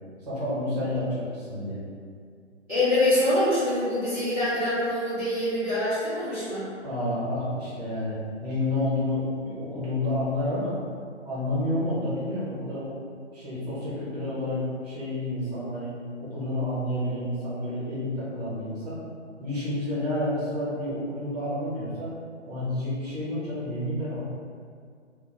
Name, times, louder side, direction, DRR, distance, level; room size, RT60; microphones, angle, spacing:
voice 1, 0.2-1.8 6.8-10.8 11.2-12.9 13.3-15.9 16.2-19.0 19.4-22.1 22.5-24.2, left 1 dB, 35° right, -9 dB, 0.9 m, -29 dB
voice 2, 2.7-6.6, left 1 dB, 5° right, -19 dB, 0.6 m, -25 dB
2.2 x 2.2 x 3.1 m, 2.2 s
figure-of-eight pair, 135°, 37 cm